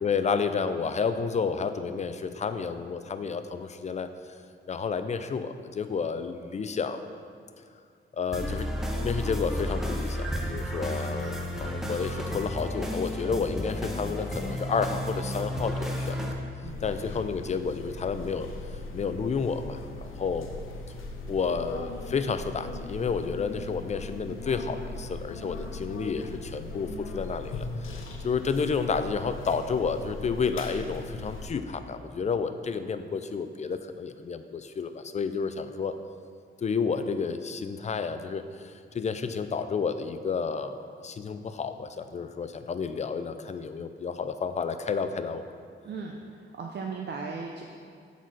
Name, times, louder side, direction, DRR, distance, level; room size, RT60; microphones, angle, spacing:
voice 1, 0.0-4.1 4.7-7.0 8.2-8.7 9.0-16.2 16.8-20.5 21.3-36.0 36.6-45.4, left 5 dB, 35° left, 10 dB, 0.4 m, -31 dB
sound 1, 8.3-16.3, left 1 dB, ahead, 0.8 m, -32 dB
voice 2, 16.6-17.0 45.8-47.6, right 4 dB, 55° right, 1 dB, 0.6 m, -37 dB
sound 2, 16.7-31.5, left 2 dB, 80° left, 0.8 m, -39 dB
8.1 x 4.1 x 6.3 m, 2.2 s
wide cardioid pair, 125°, 20 cm